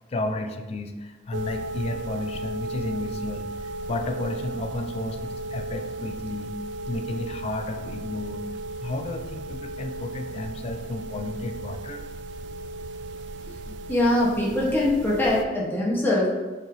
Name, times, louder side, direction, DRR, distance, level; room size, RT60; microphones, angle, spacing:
voice 1, 0.1-6.6 6.8-8.4 8.8-12.1, left 2 dB, 35° left, 6 dB, 0.4 m, -32 dB
sound 1, 1.3-15.4, right 2 dB, 80° right, 0.3 m, -35 dB
voice 2, 13.9-16.3, left 1 dB, 10° left, -6 dB, 1.0 m, -22 dB
6.2 x 3.1 x 2.6 m, 1.2 s
head